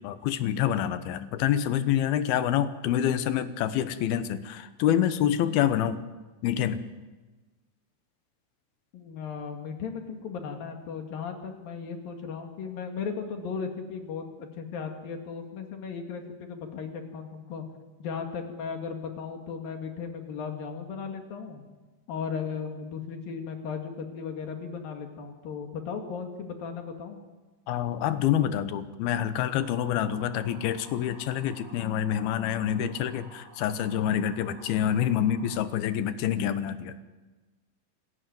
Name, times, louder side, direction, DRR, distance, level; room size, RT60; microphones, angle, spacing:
voice 1, 0.0-6.0 6.4-6.8 27.7-36.9, left 10 dB, 90° left, 11 dB, 3.0 m, -27 dB
voice 2, 8.9-17.6 18.0-21.6 22.1-27.2, left 6 dB, 70° left, 4 dB, 3.8 m, -36 dB
sound 1, 29.5-35.6, right 1 dB, 35° right, 4.4 m, -52 dB
28.0 x 13.0 x 9.4 m, 1.2 s
omnidirectional pair, 4.3 m